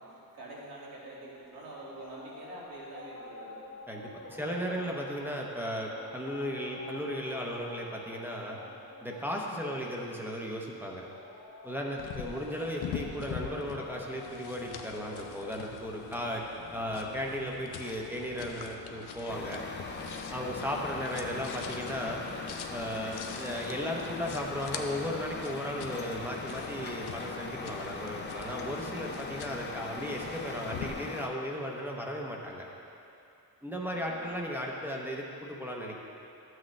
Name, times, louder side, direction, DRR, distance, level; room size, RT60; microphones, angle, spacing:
voice 1, 0.0-3.6 4.3-4.9 33.9-34.3, right 2 dB, 70° right, -6 dB, 2.2 m, -46 dB
sound 1, 1.1-17.5, left 3 dB, 45° left, 1.0 m, -50 dB
voice 2, 3.9-8.6 9.0-11.0 11.6-16.4 16.7-19.6 20.3-22.2 22.7-32.7 33.6-36.0, equal, 5° right, -2 dB, 0.8 m, -36 dB
sound 2, 12.0-30.9, left 7 dB, 80° left, 0.7 m, -44 dB
Truck, 19.3-31.3, left 3 dB, 30° left, 0.6 m, -40 dB
12.5 x 7.7 x 3.2 m, 2.7 s
wide cardioid pair, 175°, 38 cm